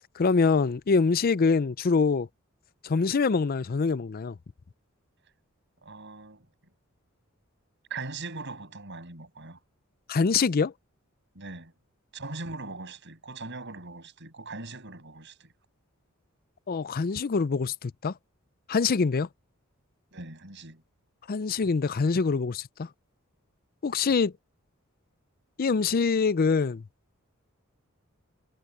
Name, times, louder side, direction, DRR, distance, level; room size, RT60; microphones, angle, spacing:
voice 1, 0.2-2.3 2.8-4.4 10.1-10.7 16.7-18.1 18.7-19.3 21.3-22.9 23.8-24.3 25.6-26.8, left 4 dB, 45° left, 0.5 m, -24 dB
voice 2, 5.8-6.5 7.9-9.6 11.3-11.7 12.1-15.5 20.1-20.8, right 3 dB, 60° right, 7.5 m, -40 dB
head